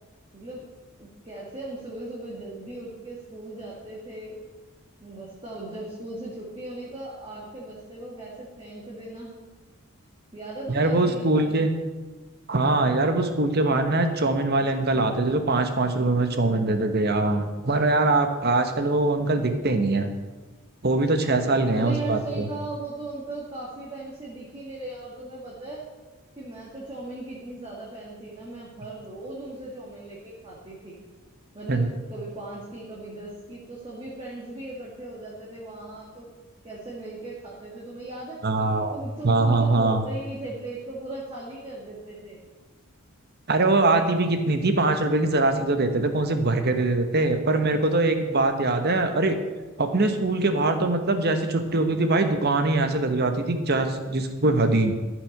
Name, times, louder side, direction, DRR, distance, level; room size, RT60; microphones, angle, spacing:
voice 1, 0.3-0.7 1.0-4.4 5.0-9.4 10.3-11.7 21.7-25.8 26.4-31.0 31.5-36.3 36.6-38.4 38.9-42.4, right 2 dB, 25° right, -5 dB, 2.1 m, -38 dB
voice 2, 10.7-11.7 12.5-20.1 20.8-22.5 31.7-31.9 38.4-39.0 39.2-40.0 43.5-49.4 49.8-54.9, right 2 dB, 45° right, 7 dB, 1.2 m, -22 dB
14.0 x 6.3 x 6.6 m, 1.3 s
head